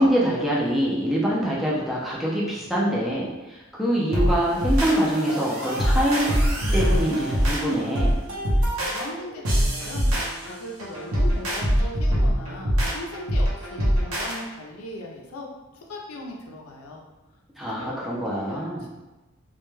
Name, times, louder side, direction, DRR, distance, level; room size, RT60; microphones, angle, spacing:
voice 1, 0.0-6.3 6.7-8.1 17.6-18.8, equal, ahead, -6 dB, 0.3 m, -24 dB
sound 1, 4.1-14.4, equal, 80° right, 0.6 m, -23 dB
voice 2, 8.9-10.1 10.5-15.5 15.7-17.0 17.6-18.9, left 2 dB, 90° left, -1 dB, 0.5 m, -38 dB
2.2 x 2.1 x 3.0 m, 1.1 s
head